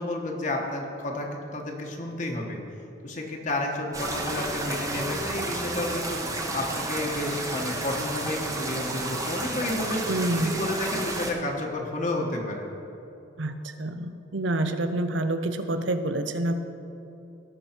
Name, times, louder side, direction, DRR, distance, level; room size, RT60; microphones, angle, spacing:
voice 1, 0.0-2.6 3.0-10.0 10.3-12.6, left 1 dB, 40° left, 0 dB, 1.2 m, -31 dB
sound 1, 3.9-11.3, right 2 dB, 15° right, 0.9 m, -31 dB
voice 2, 10.1-10.6 13.4-16.5, right 1 dB, 70° right, 8 dB, 0.7 m, -28 dB
18.0 x 6.2 x 4.5 m, 2.8 s
head